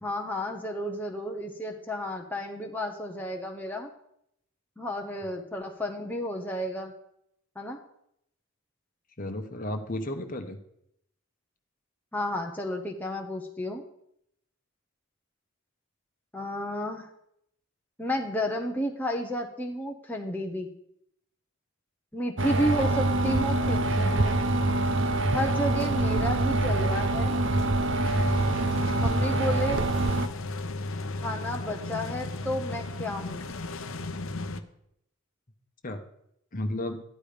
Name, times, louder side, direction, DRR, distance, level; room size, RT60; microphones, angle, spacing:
voice 1, 0.0-3.9 4.8-6.9 7.5-7.8 12.1-13.8 16.3-17.1 18.0-20.7 22.1-24.4 25.3-27.3 28.9-29.8 31.2-33.5, equal, 10° left, 1 dB, 0.9 m, -32 dB
voice 2, 9.2-10.6 35.8-36.0 36.5-37.0, left 1 dB, 35° left, 5 dB, 1.1 m, -33 dB
sound 1, 22.4-30.3, right 2 dB, 55° right, 0.8 m, -25 dB
sound 2, 28.0-34.6, left 2 dB, 65° left, 0.8 m, -35 dB
13.0 x 10.5 x 5.1 m, 0.76 s
head